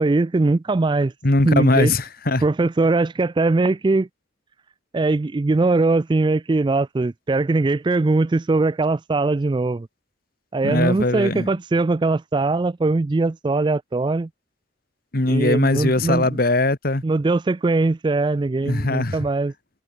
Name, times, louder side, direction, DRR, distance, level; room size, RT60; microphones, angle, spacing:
voice 1, 0.0-1.1 1.4-1.9 2.4-4.1 4.9-9.9 10.5-14.3 15.3-16.4 17.0-19.5, right 3 dB, 25° right, 0.3 m, -21 dB
voice 2, 1.2-2.4 10.6-11.5 15.1-17.0 18.6-19.2, left 2 dB, 50° left, 1.5 m, -20 dB
head